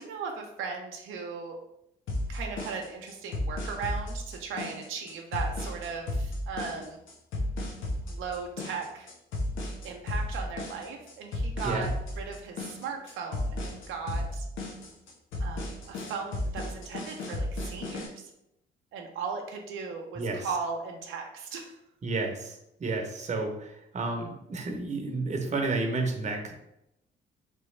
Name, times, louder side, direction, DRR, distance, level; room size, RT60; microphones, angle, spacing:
voice 1, 0.0-1.6 2.3-7.0 8.0-9.1 9.8-14.5 15.4-18.2 18.9-21.7, right 5 dB, 80° right, 1 dB, 0.6 m, -37 dB
sound 1, 2.1-18.1, left 1 dB, 85° left, 0.8 m, -34 dB
voice 2, 20.2-20.5 22.0-26.5, right 3 dB, 35° right, 2 dB, 0.8 m, -31 dB
3.3 x 3.0 x 3.2 m, 0.82 s
cardioid pair, 90°, 20 cm